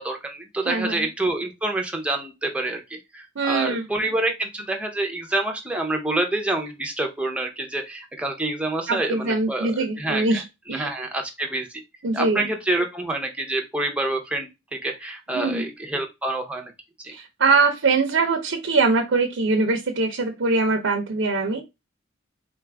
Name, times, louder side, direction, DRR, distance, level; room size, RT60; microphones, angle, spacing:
voice 1, 0.0-10.4 10.7-11.7 12.1-16.7 17.0-17.1, right 2 dB, 5° right, 3 dB, 0.6 m, -27 dB
voice 2, 0.6-1.1 3.4-3.9 8.9-10.9 12.0-12.5 15.3-15.7 17.1-21.6, right 3 dB, 65° right, 4 dB, 0.6 m, -23 dB
3.8 x 2.4 x 3.3 m, 0.23 s
head